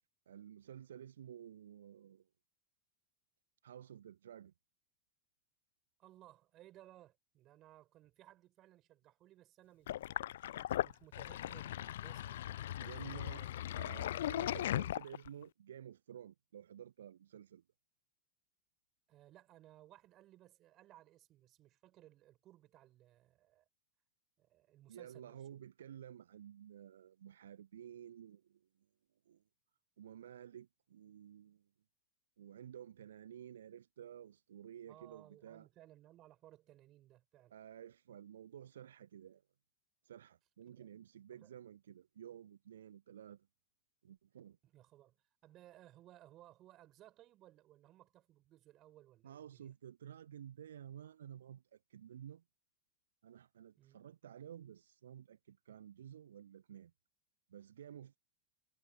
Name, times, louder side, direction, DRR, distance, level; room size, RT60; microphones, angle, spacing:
voice 1, 0.3-2.3 3.6-4.5 12.8-17.6 24.9-28.7 29.3-29.4 30.0-31.7 32.4-35.7 37.5-39.4 40.0-43.5 44.0-44.6 49.2-52.4 53.2-56.9 57.5-58.2, right 10 dB, 65° right, 1.0 m, -53 dB
voice 2, 6.0-10.5 10.8-14.4 19.1-23.6 24.4-25.4 34.9-37.5 40.7-40.9 41.3-41.5 44.6-45.2 45.4-49.7 53.8-54.0, right 14 dB, 35° right, 7.4 m, -62 dB
Sink (filling or washing), 9.9-15.4, left 12 dB, 60° left, 0.4 m, -38 dB
figure-of-eight pair, 90°, 0 cm